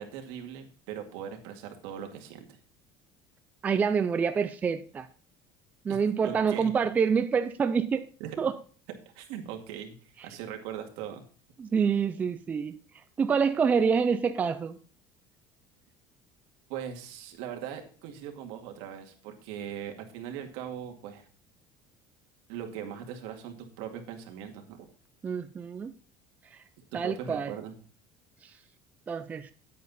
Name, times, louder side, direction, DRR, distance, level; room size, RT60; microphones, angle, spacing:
voice 1, 0.0-2.6 5.9-6.0 6.2-6.7 8.2-8.4 9.2-9.9 10.2-11.2 16.7-21.2 22.5-24.9 26.9-27.7, right 9 dB, 70° right, 2.1 m, -40 dB
voice 2, 3.6-5.1 5.8-8.1 8.4-8.5 11.6-12.8 13.2-14.8 25.2-25.9 26.9-27.5 29.1-29.5, right 6 dB, 15° right, 0.4 m, -26 dB
9.9 x 8.4 x 4.1 m
cardioid pair, 175°, 10 cm